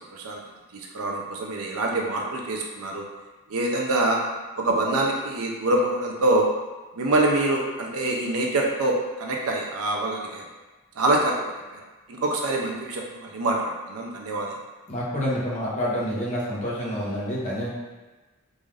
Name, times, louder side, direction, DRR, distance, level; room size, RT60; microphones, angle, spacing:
voice 1, 0.7-3.0 3.5-4.2 4.6-6.5 7.0-10.4 11.0-11.3 11.7-11.8 12.1-14.6, right 2 dB, 75° right, 0 dB, 0.6 m, -25 dB
voice 2, 14.9-17.7, equal, 35° left, -6 dB, 0.9 m, -28 dB
3.8 x 2.5 x 3.2 m, 1.2 s
head